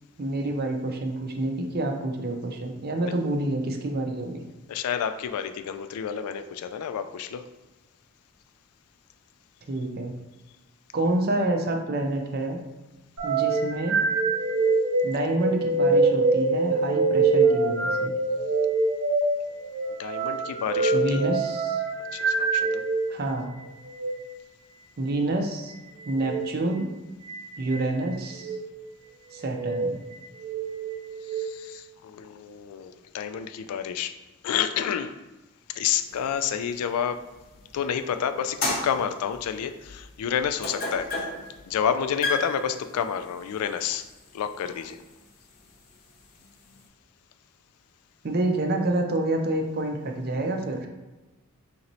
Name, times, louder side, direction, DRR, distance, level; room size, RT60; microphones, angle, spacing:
voice 1, 0.2-4.4 9.7-10.1 10.9-12.6 13.2-14.0 15.0-18.1 20.9-21.8 23.1-23.6 25.0-25.7 26.1-26.9 27.6-28.5 29.3-30.0 48.2-50.9, right 2 dB, 45° right, 3 dB, 0.5 m, -28 dB
voice 2, 4.7-7.4 20.0-21.3 22.1-22.8 31.3-34.1 34.4-35.1 35.7-37.2 37.7-41.1 41.7-44.1 44.3-45.0, left 8 dB, 85° left, 10 dB, 0.3 m, -29 dB
sound 1, 13.2-23.1 23.9-24.2 26.2-26.5 27.3-27.8 28.3-28.6 29.4-29.9 30.4-31.5, right 3 dB, 60° right, 0.9 m, -24 dB
sound 2, 36.1-37.9 38.4-46.9, left 2 dB, 40° left, 0.7 m, -35 dB
4.2 x 3.0 x 2.6 m, 1.1 s
head